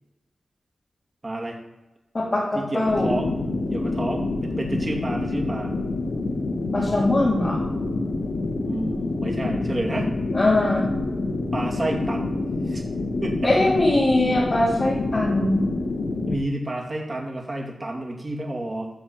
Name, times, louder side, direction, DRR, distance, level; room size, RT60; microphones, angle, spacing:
voice 1, 1.2-1.6 2.5-3.4 3.7-5.7 8.6-10.1 11.5-12.4 12.7-12.8 13.2-13.5 16.3-18.9, right 1 dB, 25° right, -1 dB, 2.4 m, -30 dB
voice 2, 2.7-3.1 6.7-7.6 10.3-10.9 13.4-15.6, left 1 dB, 35° left, -9 dB, 3.4 m, -21 dB
sound 1, 2.9-16.4, left 2 dB, 75° left, 1.3 m, -27 dB
13.0 x 4.6 x 7.6 m, 1.0 s
wide cardioid pair, 125°, 0 cm